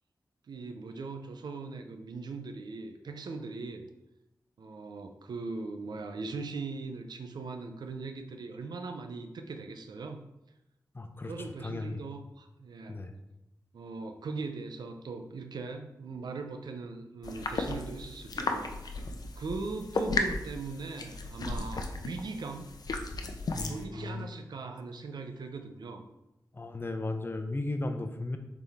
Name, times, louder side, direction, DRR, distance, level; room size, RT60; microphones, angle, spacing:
voice 1, 0.5-3.8 4.6-10.2 11.3-13.0 13.7-19.0 19.4-22.7 23.7-26.0, right 3 dB, 90° right, 6 dB, 0.6 m, -40 dB
voice 2, 10.9-11.3 11.6-12.0 12.9-13.1 23.5-24.3 26.6-28.4, left 2 dB, 30° left, 6 dB, 0.8 m, -35 dB
sound 1, 17.2-23.8, left 3 dB, 70° left, 0.7 m, -35 dB
7.0 x 4.2 x 3.5 m, 0.92 s
wide cardioid pair, 70°, 7 cm